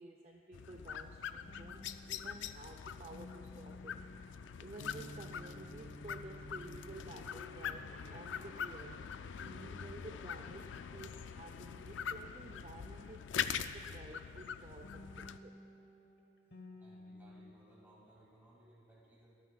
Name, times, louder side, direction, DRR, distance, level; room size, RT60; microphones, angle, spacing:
voice 1, 0.0-9.0 9.3-15.6, right 2 dB, 35° right, 2 dB, 0.5 m, -52 dB
sound 1, 0.5-15.4, left 8 dB, 75° left, 0.3 m, -44 dB
sound 2, 1.5-9.9 10.2-13.7 14.8-17.5, left 1 dB, 60° left, 1.2 m, -55 dB
voice 2, 16.8-19.4, right 1 dB, 10° right, -6 dB, 2.7 m, -63 dB
25.5 x 9.3 x 2.3 m, 2.5 s
head